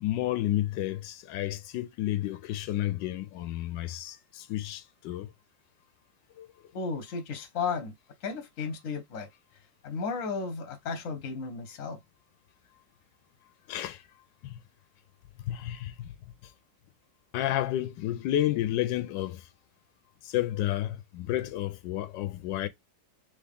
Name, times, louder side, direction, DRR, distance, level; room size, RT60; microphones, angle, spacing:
voice 1, 0.0-5.3 6.4-6.5 13.7-14.0 14.4-14.6 15.5-16.1 17.3-19.4 20.2-22.7, left 13 dB, 85° left, 1.3 m, -31 dB
voice 2, 6.7-7.9 8.2-9.3 9.8-12.0, left 5 dB, 55° left, 1.2 m, -34 dB
3.6 x 3.6 x 3.5 m
omnidirectional pair, 1.9 m